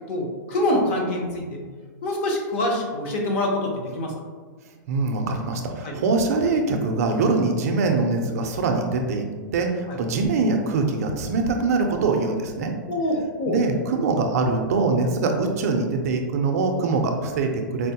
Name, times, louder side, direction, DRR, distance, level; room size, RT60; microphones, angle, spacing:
voice 1, 0.1-1.6 2.0-4.1 5.8-5.9 12.9-13.6, left 1 dB, 35° left, 1 dB, 0.6 m, -25 dB
voice 2, 4.9-12.7 13.5-17.9, right 3 dB, 50° right, 4 dB, 0.4 m, -23 dB
4.4 x 2.0 x 2.7 m, 1.5 s
hypercardioid pair, 165°, 11 cm